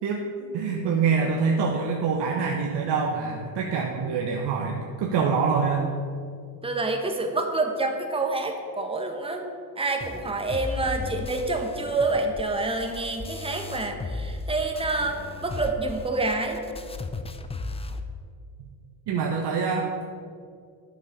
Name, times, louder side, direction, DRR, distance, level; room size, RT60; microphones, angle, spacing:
voice 1, 0.0-5.8 18.6-18.7 19.1-19.9, right 5 dB, 60° right, 1 dB, 1.1 m, -25 dB
voice 2, 6.6-9.4 9.8-16.6, right 2 dB, 10° right, 3 dB, 1.2 m, -27 dB
sound 1, 10.0-14.5 14.8-18.0, left 3 dB, 15° left, 0.5 m, -36 dB
8.4 x 6.9 x 5.3 m, 2.3 s
supercardioid pair, 80°, 46 cm